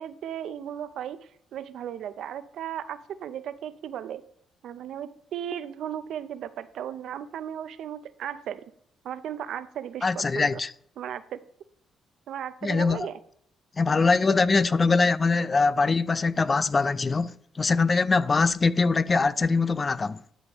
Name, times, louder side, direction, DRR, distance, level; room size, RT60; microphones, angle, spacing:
voice 1, 0.0-4.2 4.6-8.6 9.0-10.5 11.0-11.4 12.3-13.2, right 10 dB, 75° right, 0.5 m, -36 dB
voice 2, 10.0-10.7 12.6-13.1 13.8-20.2, left 4 dB, 30° left, 0.3 m, -23 dB
12.0 x 4.9 x 3.0 m
cardioid pair, 90°, 0 cm